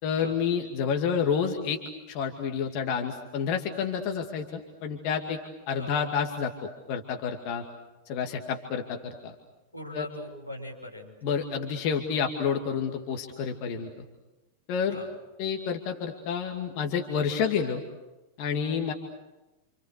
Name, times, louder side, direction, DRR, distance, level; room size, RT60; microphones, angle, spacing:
voice 1, 0.0-1.8 2.1-5.4 5.7-7.6 8.1-9.3 9.9-10.0 11.2-14.0 14.7-15.0 15.4-17.8 18.4-18.9, left 6 dB, 45° left, 4 dB, 2.4 m, -29 dB
voice 2, 9.7-11.1 14.9-15.1 18.9-19.0, left 1 dB, 85° left, 0 dB, 6.5 m, -40 dB
28.5 x 28.5 x 6.8 m, 1.1 s
figure-of-eight pair, 90°, 0 cm